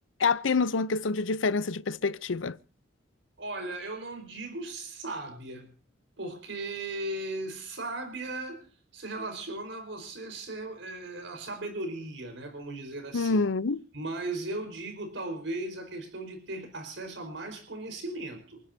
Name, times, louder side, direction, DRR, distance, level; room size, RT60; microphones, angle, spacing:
voice 1, 0.2-2.6 13.1-13.8, left 4 dB, 85° left, 0.7 m, -27 dB
voice 2, 3.4-5.7 6.2-8.6 8.9-13.4 13.9-18.6, right 2 dB, 75° right, 4.6 m, -37 dB
28.5 x 11.0 x 2.7 m
head